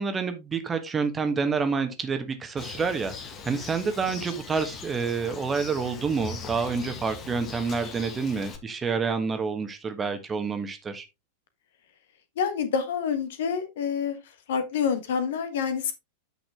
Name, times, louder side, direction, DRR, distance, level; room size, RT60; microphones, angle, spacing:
voice 1, 0.0-3.1 3.4-11.0, right 5 dB, 20° right, 1.4 m, -28 dB
Bird, 2.6-8.6, left 5 dB, 30° left, 1.8 m, -40 dB
voice 2, 12.4-14.2 14.5-15.9, left 7 dB, 55° left, 1.5 m, -27 dB
9.1 x 5.9 x 3.6 m
figure-of-eight pair, 90°, 0 cm